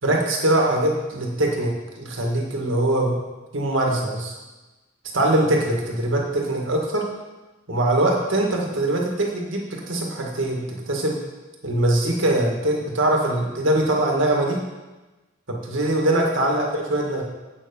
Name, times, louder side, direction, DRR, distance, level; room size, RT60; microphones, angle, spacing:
voice 1, 0.0-3.2 3.5-4.4 5.1-7.1 7.7-11.2 11.6-14.6 15.5-17.2, right 1 dB, 75° right, 0 dB, 1.8 m, -22 dB
8.3 x 7.0 x 5.4 m, 1.1 s
head